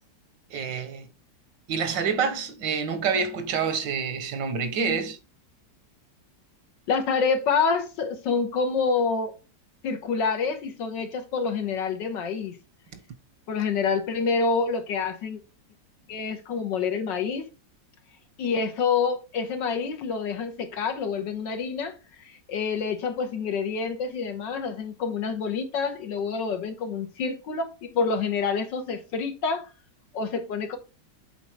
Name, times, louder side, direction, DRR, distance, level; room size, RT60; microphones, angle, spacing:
voice 1, 0.5-1.1 1.7-5.2, right 6 dB, 85° right, 1.7 m, -27 dB
voice 2, 6.9-9.3 9.8-12.6 13.5-15.4 16.1-17.5 18.4-22.0 22.3-29.7 30.1-30.8, left 5 dB, 80° left, 1.8 m, -27 dB
7.8 x 4.2 x 4.5 m
omnidirectional pair, 1.9 m